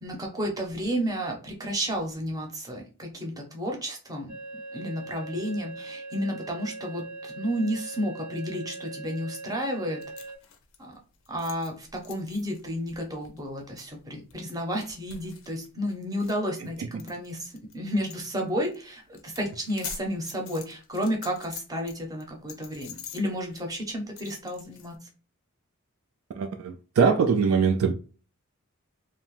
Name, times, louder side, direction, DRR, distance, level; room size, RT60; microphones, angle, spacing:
voice 1, 0.0-4.4 4.7-10.0 10.8-11.0 11.3-25.0, equal, 15° right, 0.6 m, -32 dB
sound 1, 4.3-10.4, right 3 dB, 85° right, 0.8 m, -41 dB
sound 2, 10.0-17.7 18.1-18.2 18.5-18.8 19.1-21.9 22.2-24.9, left 8 dB, 60° left, 0.4 m, -45 dB
voice 2, 26.3-27.9, right 5 dB, 70° right, 0.3 m, -22 dB
2.8 x 2.1 x 3.0 m
head